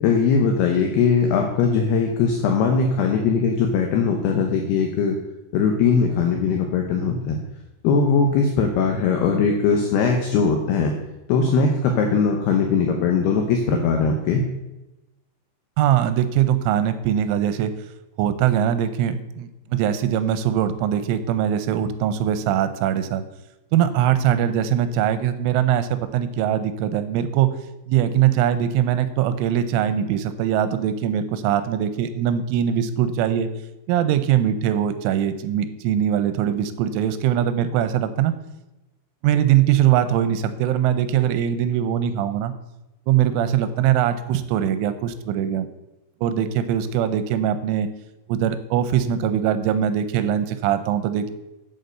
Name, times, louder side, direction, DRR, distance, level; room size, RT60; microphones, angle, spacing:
voice 1, 0.0-5.2 5.5-7.4 7.8-10.9 11.3-14.4, left 5 dB, 75° left, 3 dB, 2.6 m, -20 dB
voice 2, 15.8-17.7 18.2-23.2 23.7-27.5 27.9-33.5 33.9-38.3 39.2-42.5 43.1-45.7 46.2-47.9 48.3-51.3, right 10 dB, 85° right, 11 dB, 3.2 m, -21 dB
8.4 x 7.9 x 6.7 m, 0.98 s
omnidirectional pair, 5.6 m